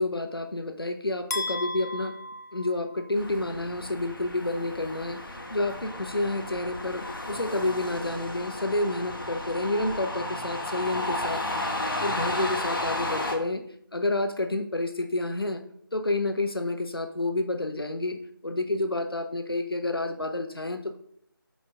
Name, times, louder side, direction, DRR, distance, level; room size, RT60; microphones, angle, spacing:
voice 1, 0.0-2.2 2.5-5.2 5.5-11.4 12.0-13.6 13.9-15.6 15.9-21.0, left 2 dB, 90° left, 7 dB, 0.8 m, -29 dB
sound 1, 1.3-3.4, left 2 dB, 45° left, 0.6 m, -35 dB
sound 2, 3.1-13.4, left 1 dB, 65° left, 1.2 m, -33 dB
4.6 x 4.4 x 5.1 m, 0.67 s
figure-of-eight pair, 165°, 12 cm